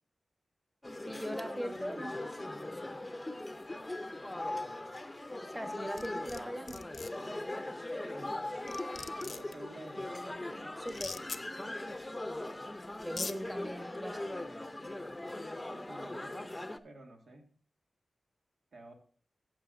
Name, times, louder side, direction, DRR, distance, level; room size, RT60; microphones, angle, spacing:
sound 1, 0.8-16.8, left 1 dB, 15° left, 0.7 m, -40 dB
voice 1, 1.0-2.2 5.5-6.8 10.8-11.2 13.0-14.4, equal, 5° right, 5 dB, 1.2 m, -40 dB
sound 2, 6.0-6.4 6.7-7.1 8.3-8.4 8.7-9.5 10.9-11.4 12.5-12.6 13.0-13.3, left 4 dB, 55° left, 0.6 m, -40 dB
voice 2, 9.2-10.4 15.7-16.5 16.8-17.5 18.7-18.9, right 2 dB, 80° right, 2 dB, 2.1 m, -51 dB
14.5 x 7.4 x 2.6 m, 0.43 s
wide cardioid pair, 105°, 0 cm